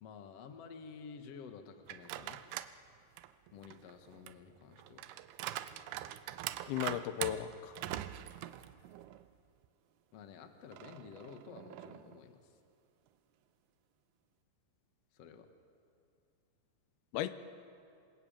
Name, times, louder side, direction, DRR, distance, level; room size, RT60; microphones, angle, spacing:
voice 1, 0.0-2.4 3.5-5.1 7.9-8.3 10.1-12.5 15.1-15.5, left 6 dB, 50° left, 6 dB, 2.2 m, -52 dB
sound 1, 1.9-2.8 3.2-9.3 9.6-9.7 10.7-12.2, right 13 dB, 90° right, 2.7 m, -43 dB
voice 2, 6.7-7.8 17.1-17.4, left 12 dB, 90° left, 11 dB, 2.9 m, -36 dB
27.5 x 21.0 x 9.0 m, 2.5 s
omnidirectional pair, 4.4 m